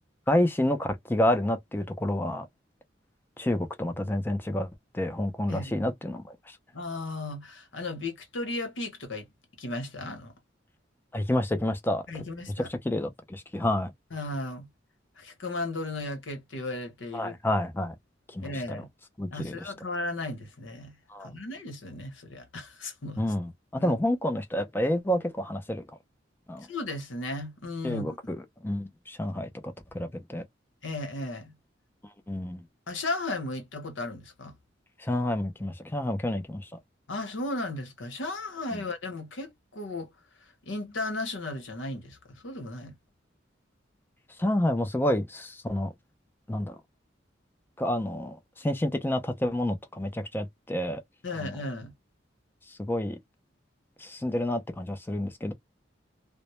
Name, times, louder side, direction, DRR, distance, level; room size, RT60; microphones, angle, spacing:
voice 1, 0.3-2.5 3.4-4.7 4.9-6.6 11.1-12.0 12.7-13.9 17.1-17.9 18.3-18.5 19.2-19.6 21.1-21.3 23.2-25.8 26.5-26.7 27.8-29.5 29.9-30.4 32.3-32.6 35.0-36.7 38.7-38.8 44.4-45.9 46.5-46.8 47.8-51.0 51.4-51.5 52.8-53.2 54.0-55.5, left 1 dB, 10° left, 0.4 m, -29 dB
voice 2, 6.7-9.3 9.6-10.3 12.1-12.7 14.1-14.7 15.2-17.4 18.4-18.9 19.3-23.2 23.8-23.9 26.7-28.2 30.8-31.5 32.9-34.5 37.1-40.1 40.6-42.9 51.2-51.9, left 2 dB, 85° left, 0.9 m, -35 dB
2.1 x 2.0 x 2.9 m
head